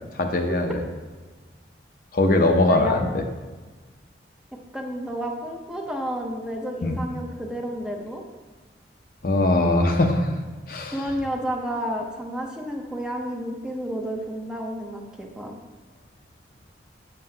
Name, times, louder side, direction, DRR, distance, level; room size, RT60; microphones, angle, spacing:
voice 1, 0.1-0.8 2.1-3.2 6.8-7.0 9.2-10.3 10.7-11.2, left 2 dB, 55° left, 4 dB, 0.7 m, -21 dB
voice 2, 4.7-8.2 10.9-15.6, equal, 5° right, 0 dB, 0.7 m, -31 dB
8.3 x 7.5 x 2.8 m, 1.3 s
head